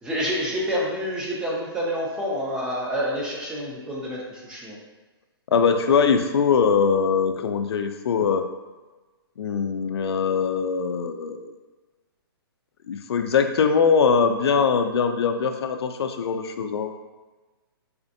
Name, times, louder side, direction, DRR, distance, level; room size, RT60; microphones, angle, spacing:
voice 1, 0.0-4.8, equal, 5° right, -4 dB, 0.4 m, -28 dB
voice 2, 5.5-8.5 9.4-11.5 12.9-16.9, left 6 dB, 85° left, 7 dB, 0.4 m, -22 dB
4.2 x 2.5 x 2.6 m, 1.2 s
hypercardioid pair, 160°, 13 cm